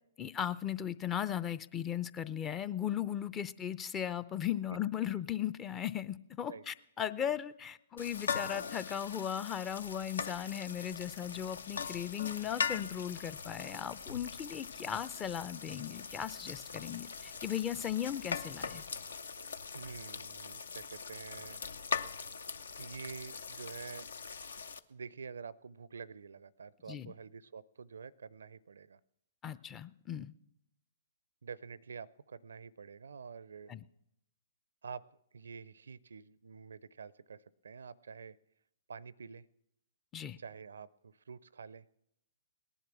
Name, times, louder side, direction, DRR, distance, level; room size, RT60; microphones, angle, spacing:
voice 1, 0.2-18.8 26.9-27.1 29.4-30.3 33.7-33.8 40.1-40.4, left 9 dB, 20° left, 17 dB, 0.5 m, -37 dB
sound 1, 8.0-24.8, left 5 dB, 70° left, 0.6 m, -41 dB
sound 2, 10.9-19.1, left 8 dB, 55° left, 2.3 m, -61 dB
voice 2, 19.7-21.6 22.8-24.1 24.9-29.0 31.4-33.8 34.8-35.0 35.3-38.4 38.9-39.5 40.4-41.9, right 5 dB, 70° right, 22 dB, 0.4 m, -48 dB
18.5 x 11.0 x 6.1 m, 0.81 s
figure-of-eight pair, 115°, 0 cm